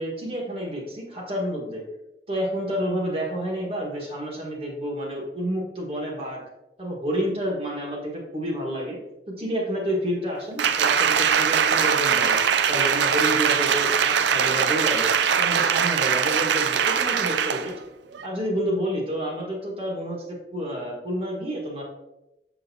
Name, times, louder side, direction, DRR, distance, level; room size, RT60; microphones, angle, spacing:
voice 1, 0.0-1.8 2.3-6.4 6.8-9.0 9.3-12.4 12.7-17.7 18.2-21.8, equal, 35° right, -2 dB, 1.5 m, -29 dB
Applause, 10.6-17.7 18.1-18.3, right 7 dB, 85° right, 0.4 m, -21 dB
6.8 x 6.2 x 2.8 m, 0.95 s
head